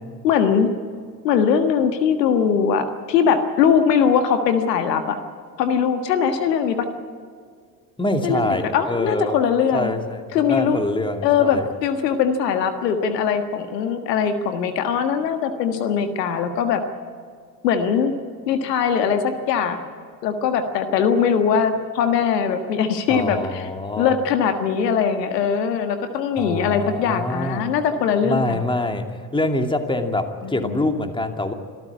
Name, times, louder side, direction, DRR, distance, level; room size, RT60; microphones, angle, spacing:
voice 1, 0.2-0.7 1.2-5.2 5.6-6.8 8.2-9.9 10.3-10.8 11.2-16.8 17.6-18.1 18.5-19.8 20.2-23.7 24.0-28.6 30.4-30.8, left 7 dB, 75° left, 8 dB, 1.7 m, -21 dB
voice 2, 8.0-11.7 23.1-24.1 26.4-27.7 28.2-31.5, left 2 dB, 10° left, 6 dB, 2.5 m, -25 dB
26.0 x 14.0 x 8.4 m, 2.1 s
figure-of-eight pair, 60°, 50 cm